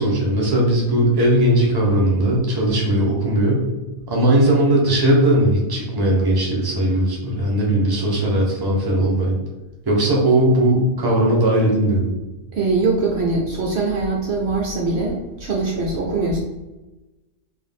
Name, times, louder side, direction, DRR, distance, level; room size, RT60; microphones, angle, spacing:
voice 1, 0.0-3.6 4.1-9.4 9.9-12.1, right 1 dB, 20° right, -3 dB, 0.8 m, -18 dB
voice 2, 12.5-16.4, right 3 dB, 65° right, -1 dB, 0.9 m, -22 dB
3.9 x 2.6 x 3.5 m, 1.1 s
omnidirectional pair, 1.3 m